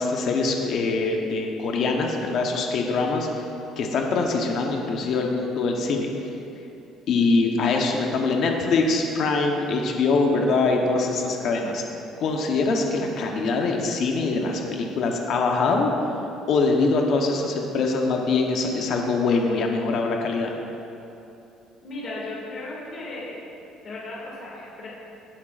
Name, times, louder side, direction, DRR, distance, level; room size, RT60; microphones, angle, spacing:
voice 1, 0.0-3.3 3.8-6.1 7.1-11.8 12.2-15.9 16.5-20.5, left 3 dB, 50° left, 1 dB, 1.0 m, -23 dB
voice 2, 21.8-23.4 23.8-24.9, left 2 dB, 35° left, -6 dB, 2.2 m, -35 dB
16.5 x 9.0 x 2.5 m, 2.8 s
cardioid pair, 160°, 0 cm